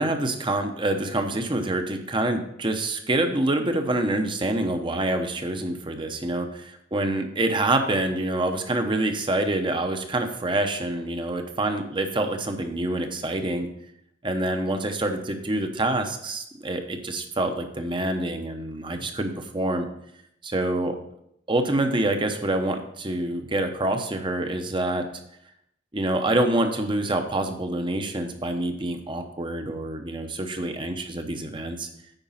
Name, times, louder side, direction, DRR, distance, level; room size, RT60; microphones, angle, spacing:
voice 1, 0.0-13.7 14.2-19.9 20.4-21.0 21.5-25.1 25.9-31.9, right 1 dB, 25° right, 6 dB, 0.9 m, -26 dB
9.0 x 5.2 x 5.7 m, 0.76 s
head